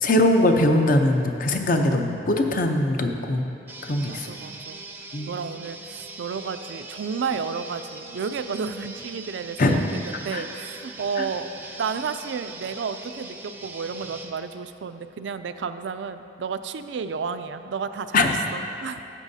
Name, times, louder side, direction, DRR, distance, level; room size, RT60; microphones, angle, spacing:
voice 1, 0.0-3.4 3.8-4.3 5.1-5.3 9.6-9.8 10.3-10.4 11.2-11.3 18.1-18.3, left 1 dB, 50° left, 4 dB, 0.7 m, -21 dB
sound 1, 3.7-14.3, right 3 dB, 10° right, 0.5 m, -41 dB
voice 2, 4.1-4.8 5.3-11.5 11.8-19.1, right 5 dB, 75° right, 10 dB, 0.4 m, -32 dB
13.0 x 8.1 x 2.7 m, 2.7 s
head